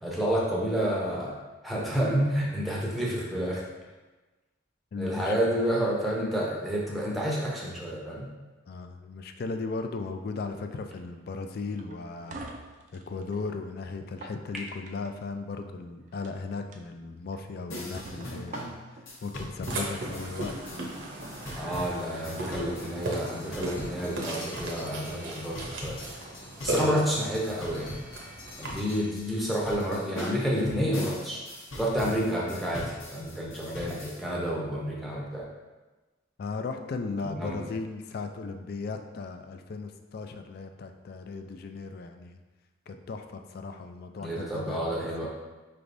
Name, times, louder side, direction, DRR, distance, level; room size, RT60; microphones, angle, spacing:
voice 1, 0.0-1.3 1.6-3.7 5.0-8.3 21.6-26.0 26.6-27.9 28.6-31.4 31.8-35.5 37.4-37.6 44.2-45.3, equal, ahead, -5 dB, 0.6 m, -29 dB
voice 2, 4.9-5.7 8.7-12.4 12.9-18.7 19.2-20.9 21.8-22.7 23.8-23.9 26.8-26.9 36.4-42.4 42.9-45.1, left 4 dB, 50° left, 6 dB, 0.3 m, -37 dB
sound 1, 11.8-13.4 14.0-15.1 16.1-16.3 16.7-16.8 17.3-17.4 17.9-19.0, right 3 dB, 40° right, 0.3 m, -43 dB
sound 2, 17.7-34.2, left 1 dB, 90° left, 1.0 m, -41 dB
Burping eructation, 19.7-28.7, right 1 dB, 60° right, 0.7 m, -37 dB
5.0 x 3.3 x 2.6 m, 1.2 s
head